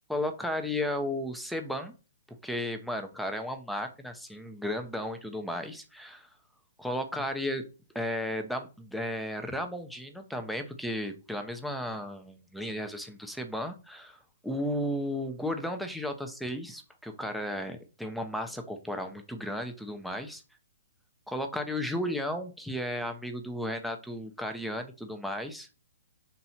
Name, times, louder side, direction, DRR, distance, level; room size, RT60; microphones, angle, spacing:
voice 1, 0.1-1.9 2.4-6.3 6.8-7.7 7.9-20.4 21.3-25.7, left 1 dB, ahead, 5 dB, 0.8 m, -34 dB
5.3 x 4.4 x 4.1 m, 0.32 s
hypercardioid pair, 150°, 0 cm